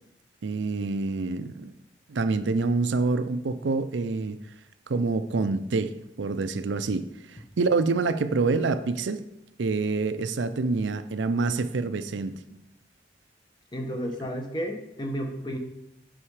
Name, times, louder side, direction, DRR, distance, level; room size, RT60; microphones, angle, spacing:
voice 1, 0.4-1.7 2.1-4.4 4.9-9.2 9.6-12.6, right 3 dB, 85° right, 12 dB, 0.5 m, -27 dB
voice 2, 13.7-15.6, equal, 25° left, 3 dB, 1.0 m, -32 dB
8.7 x 5.5 x 4.8 m, 0.87 s
head